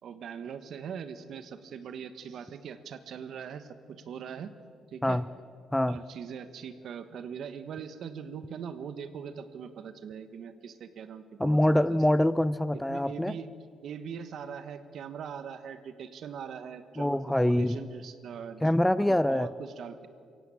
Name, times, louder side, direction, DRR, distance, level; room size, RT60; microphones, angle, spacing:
voice 1, 0.0-4.5 4.9-5.2 5.9-12.0 12.9-13.5 13.8-18.6 19.0-20.1, right 7 dB, 70° right, 11 dB, 1.5 m, -41 dB
voice 2, 11.4-13.4 17.0-17.8 18.6-19.5, left 1 dB, 5° left, 17 dB, 0.6 m, -25 dB
23.0 x 17.0 x 8.7 m, 2.3 s
cardioid pair, 90°, 0 cm